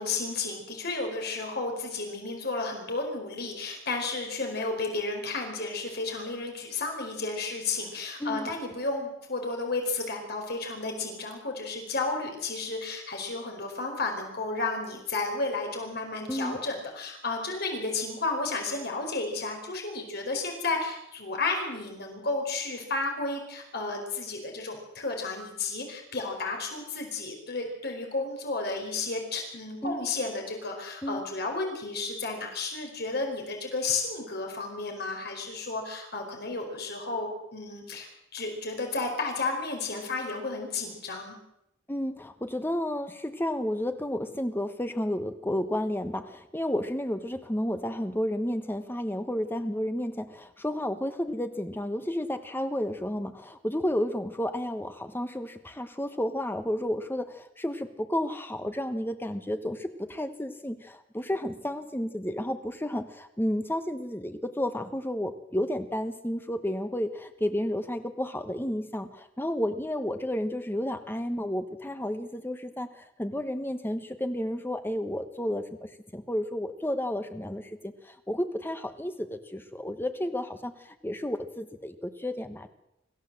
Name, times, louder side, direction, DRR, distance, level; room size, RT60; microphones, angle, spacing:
voice 1, 0.0-41.4, left 3 dB, 55° left, 2 dB, 4.8 m, -32 dB
voice 2, 8.2-8.5 16.3-16.6 29.8-30.1 31.0-31.2 41.9-82.7, left 1 dB, 10° left, 8 dB, 1.2 m, -32 dB
26.0 x 15.0 x 7.7 m, 0.81 s
head